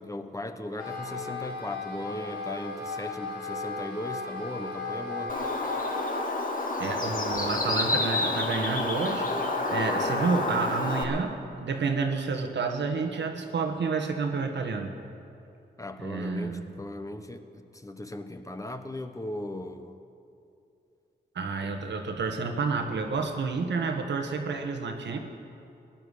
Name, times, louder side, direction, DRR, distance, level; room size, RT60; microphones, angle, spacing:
voice 1, 0.0-5.4 15.8-20.0 21.6-21.7, left 1 dB, 20° left, 8 dB, 1.0 m, -38 dB
Wind instrument woodwind instrument, 0.7-6.3, left 3 dB, 70° left, 3.3 m, -36 dB
Bird, 5.3-11.0, left 2 dB, 50° left, 1.7 m, -29 dB
voice 2, 6.8-9.3 9.7-15.0 16.0-16.6 21.3-25.2, right 4 dB, 80° right, 4 dB, 1.4 m, -30 dB
16.5 x 10.5 x 6.6 m, 2.6 s
cardioid pair, 55°, 18 cm